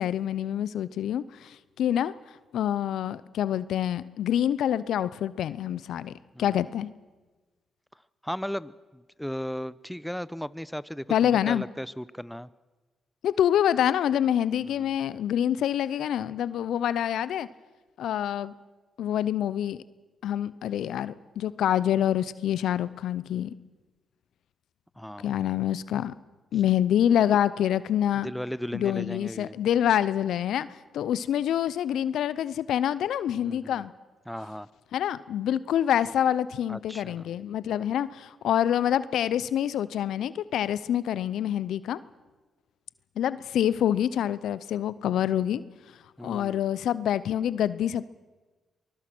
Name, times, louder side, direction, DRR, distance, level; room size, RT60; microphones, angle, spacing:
voice 1, 0.0-2.1 2.5-6.1 6.4-6.9 11.1-11.7 13.2-17.5 18.0-18.5 19.0-19.8 20.2-23.5 25.2-26.1 26.5-28.3 28.7-30.7 30.9-33.9 34.9-42.0 43.2-45.6 46.2-48.0, left 10 dB, 80° left, 18 dB, 0.6 m, -26 dB
voice 2, 8.2-12.5 14.7-14.9 25.0-25.3 28.2-29.6 33.4-33.8 34.3-34.7 36.7-37.3 46.2-46.7, equal, 5° left, 18 dB, 0.8 m, -36 dB
24.5 x 20.5 x 6.2 m, 1.2 s
supercardioid pair, 50°, 0 cm